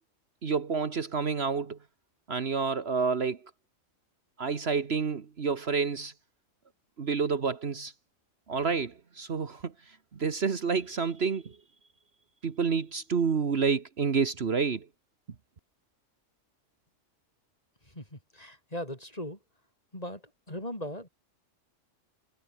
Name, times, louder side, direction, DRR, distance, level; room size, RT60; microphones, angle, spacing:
voice 1, 0.4-1.8 2.3-3.4 4.4-6.1 7.0-7.9 8.5-9.7 10.1-11.6 12.4-14.8, right 5 dB, 55° right, 1.5 m, -29 dB
voice 2, 17.9-19.4 19.9-20.2 20.5-21.1, left 1 dB, 30° left, 7.1 m, -38 dB
omnidirectional pair, 1.3 m